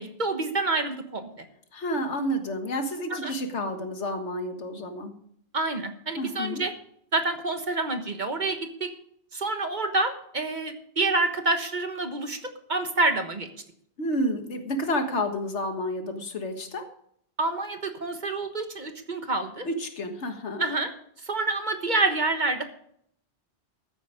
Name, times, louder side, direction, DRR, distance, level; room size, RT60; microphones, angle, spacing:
voice 1, 0.0-1.5 3.1-3.3 5.5-6.7 7.1-8.9 9.3-13.5 17.4-19.7 20.6-20.9 21.2-22.6, right 2 dB, 45° right, 7 dB, 1.4 m, -28 dB
voice 2, 1.7-5.1 6.2-6.6 14.0-16.8 19.6-20.6, equal, 80° left, 6 dB, 1.8 m, -30 dB
14.5 x 8.9 x 5.0 m, 0.67 s
omnidirectional pair, 1.2 m